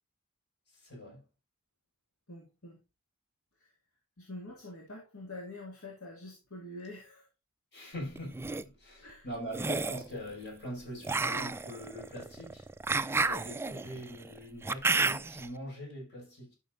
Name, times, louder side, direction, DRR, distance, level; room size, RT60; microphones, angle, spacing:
voice 1, 0.7-1.3 7.7-12.7 13.1-16.5, equal, 55° left, 5.3 m, -43 dB
voice 2, 2.3-2.8 3.6-3.7 4.2-7.3 9.0-9.2, left 1 dB, 70° left, 2.2 m, -46 dB
sound 1, 8.2-8.6 9.5-10.1 11.0-15.5, right 3 dB, 10° right, 0.3 m, -31 dB
12.0 x 6.5 x 2.5 m
head